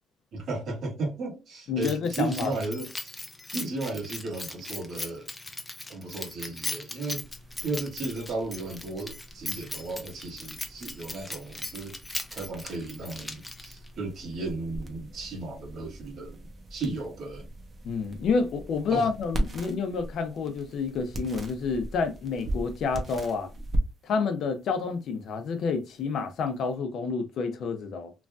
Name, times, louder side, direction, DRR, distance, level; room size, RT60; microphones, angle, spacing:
voice 1, 0.3-3.1 3.5-5.3 5.9-7.2 7.6-11.9 12.3-16.4 16.7-17.4 18.9-19.1, right 2 dB, 60° right, 1.5 m, -34 dB
voice 2, 1.7-2.5 17.8-23.5 24.0-28.1, left 5 dB, 65° left, 0.6 m, -29 dB
Keys jangling, 1.8-13.9, left 2 dB, 15° left, 0.6 m, -39 dB
sound 1, 7.1-26.7, right 1 dB, 35° right, 0.7 m, -39 dB
3.1 x 2.5 x 2.2 m
cardioid pair, 115°, 0 cm